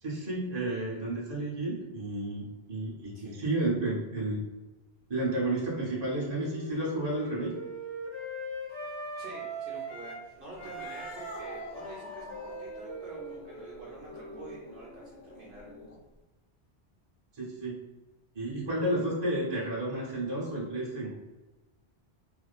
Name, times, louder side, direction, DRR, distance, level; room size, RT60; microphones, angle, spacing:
voice 1, 0.0-4.4 5.1-7.6 17.3-17.8 18.3-21.1, right 1 dB, 25° right, -5 dB, 0.7 m, -31 dB
Wind instrument woodwind instrument, 5.7-10.2 10.5-15.0, right 2 dB, 30° left, 0.9 m, -41 dB
voice 2, 9.2-15.7, right 2 dB, 60° right, -5 dB, 0.8 m, -48 dB
Cat, 10.5-16.2, left 2 dB, 60° left, 0.4 m, -47 dB
2.6 x 2.5 x 2.3 m, 1.1 s
omnidirectional pair, 1.1 m